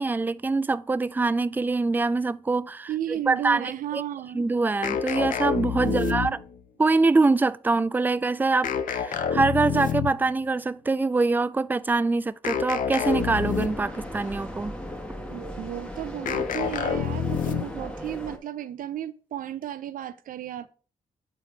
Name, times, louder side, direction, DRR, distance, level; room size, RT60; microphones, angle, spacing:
voice 1, 0.0-4.0 4.3-6.4 6.8-14.8, right 3 dB, 15° right, 0.3 m, -24 dB
voice 2, 2.9-4.4 5.8-6.4 15.3-20.7, right 11 dB, 70° right, 0.6 m, -33 dB
sound 1, 4.8-6.6 8.6-10.3 12.4-14.0 16.3-17.9, left 8 dB, 65° left, 0.6 m, -28 dB
sound 2, 13.0-18.4, equal, 5° left, 1.2 m, -37 dB
8.3 x 4.7 x 3.4 m
cardioid pair, 70°, 15 cm